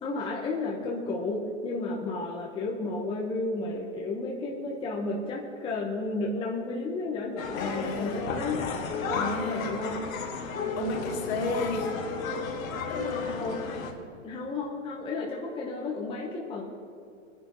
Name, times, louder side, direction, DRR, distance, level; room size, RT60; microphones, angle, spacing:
voice 1, 0.0-8.7 9.0-10.1 13.2-13.6 14.2-16.6, left 3 dB, 15° left, -3 dB, 1.1 m, -33 dB
sound 1, 7.4-13.9, left 4 dB, 85° left, 2.2 m, -33 dB
voice 2, 7.6-8.2 9.1-9.7 10.8-11.9 12.9-13.5, left 2 dB, 50° left, 1 dB, 2.7 m, -32 dB
25.0 x 10.0 x 3.1 m, 2.5 s
hypercardioid pair, 150°, 40 cm